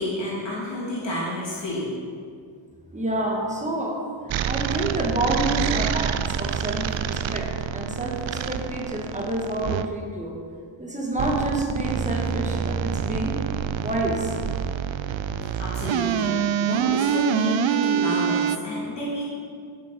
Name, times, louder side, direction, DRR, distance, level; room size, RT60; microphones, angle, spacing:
voice 1, 0.0-1.9 7.1-7.2 15.6-19.2, left 1 dB, 65° left, -7 dB, 3.1 m, -29 dB
voice 2, 2.9-4.0 4.5-10.4 10.8-13.4 13.8-14.4, right 1 dB, 15° right, -1 dB, 1.7 m, -28 dB
sound 1, 4.3-9.8 11.1-18.6, right 9 dB, 75° right, 0.5 m, -26 dB
14.0 x 7.7 x 4.3 m, 2.2 s
wide cardioid pair, 140°, 47 cm